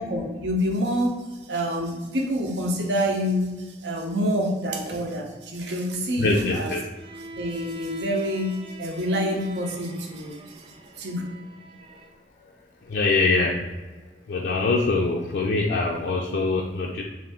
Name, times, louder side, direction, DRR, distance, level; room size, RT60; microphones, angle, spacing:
voice 1, 0.0-6.7 7.3-10.4 11.0-11.2, equal, 80° right, 1 dB, 0.7 m, -27 dB
voice 2, 6.2-6.8 12.4-12.5 12.8-13.6 14.3-17.0, left 3 dB, 70° left, -1 dB, 0.4 m, -23 dB
Bowed string instrument, 6.9-12.2, right 2 dB, 30° right, 0.3 m, -44 dB
3.7 x 2.6 x 3.5 m, 1.2 s
head